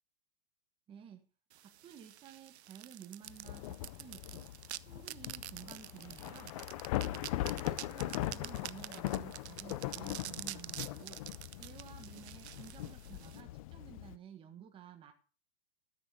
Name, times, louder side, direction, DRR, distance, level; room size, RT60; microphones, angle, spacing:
voice 1, 0.9-1.2 1.6-4.5 4.9-6.5 7.0-11.2 11.6-15.1, right 8 dB, 15° right, 5 dB, 1.5 m, -53 dB
sound 1, 1.5-13.4, right 13 dB, 90° right, 0.7 m, -47 dB
Thunder / Rain, 3.3-14.2, left 15 dB, 35° left, 0.5 m, -40 dB
13.0 x 6.2 x 6.2 m, 0.38 s
supercardioid pair, 160°, 32 cm